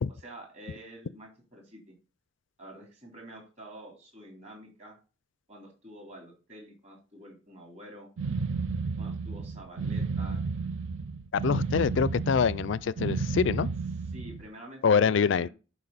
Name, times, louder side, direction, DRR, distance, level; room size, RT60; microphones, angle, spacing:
voice 1, 0.1-1.9 2.6-5.0 5.5-8.1 9.0-10.4 11.7-11.8 13.3-13.4 14.1-15.5, right 1 dB, 35° right, 3.5 m, -48 dB
sound 1, 8.2-14.5, right 4 dB, 80° right, 0.7 m, -32 dB
voice 2, 11.3-13.7 14.8-15.5, left 6 dB, 70° left, 0.4 m, -25 dB
11.0 x 5.1 x 4.0 m
head